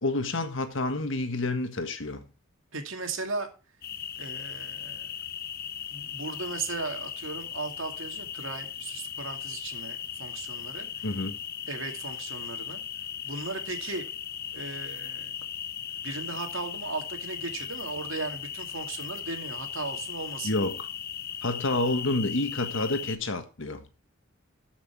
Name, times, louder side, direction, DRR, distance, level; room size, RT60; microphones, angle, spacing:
voice 1, 0.0-2.3 11.0-11.4 20.4-20.9 21.4-23.9, left 2 dB, 70° left, 1.5 m, -29 dB
voice 2, 2.7-3.5 4.2-5.1 5.9-11.1 11.7-12.8 13.2-14.0 14.5-15.3 16.0-20.5, right 3 dB, 70° right, 2.4 m, -36 dB
sound 1, 3.8-23.2, left 9 dB, 50° left, 0.7 m, -38 dB
13.0 x 6.1 x 4.6 m
head